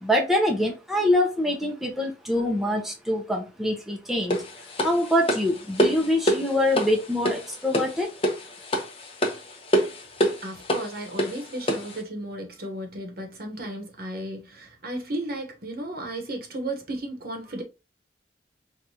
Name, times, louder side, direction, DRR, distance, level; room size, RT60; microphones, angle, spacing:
voice 1, 0.0-4.5 4.8-8.1, left 1 dB, ahead, 0.6 m, -24 dB
sound 1, 4.3-12.0, equal, 30° left, 0.8 m, -27 dB
voice 2, 10.4-17.6, right 1 dB, 55° right, 1.0 m, -34 dB
4.6 x 2.4 x 2.7 m
head